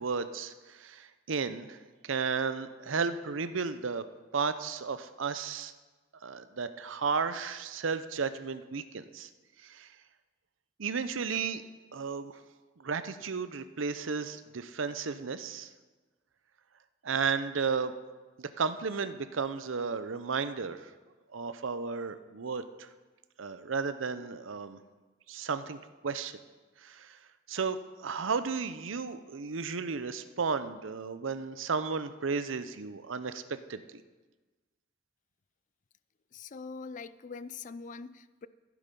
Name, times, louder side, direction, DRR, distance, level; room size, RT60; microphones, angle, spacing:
voice 1, 0.0-1.8 2.0-4.0 4.3-5.7 6.2-9.3 9.6-9.9 10.8-11.6 11.9-12.4 12.8-15.7 17.0-17.9 18.4-20.9 21.3-22.9 23.4-24.8 25.3-26.4 26.8-27.2 27.5-33.4 33.7-34.0, right 5 dB, 80° right, 12 dB, 0.7 m, -33 dB
voice 2, 36.3-38.5, left 4 dB, 40° left, 16 dB, 0.4 m, -43 dB
14.5 x 8.5 x 5.4 m, 1.3 s
head